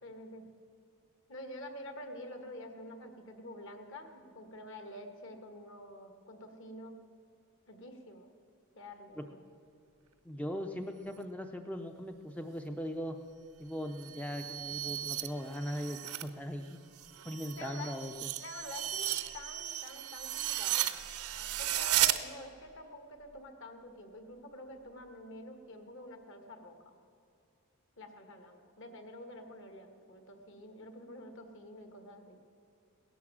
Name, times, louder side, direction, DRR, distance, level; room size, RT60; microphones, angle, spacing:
voice 1, 0.0-0.4 1.3-7.0 7.7-8.3 8.7-9.4 17.6-17.9 18.4-20.9 21.6-26.9 28.0-32.4, left 1 dB, 55° left, 6 dB, 1.7 m, -48 dB
voice 2, 10.2-13.2 13.6-16.8 17.2-18.3, equal, 5° left, 5 dB, 0.5 m, -39 dB
sound 1, 13.9-16.3 16.7-22.2, right 13 dB, 80° right, 0.8 m, -35 dB
17.0 x 11.0 x 7.3 m, 2.4 s
head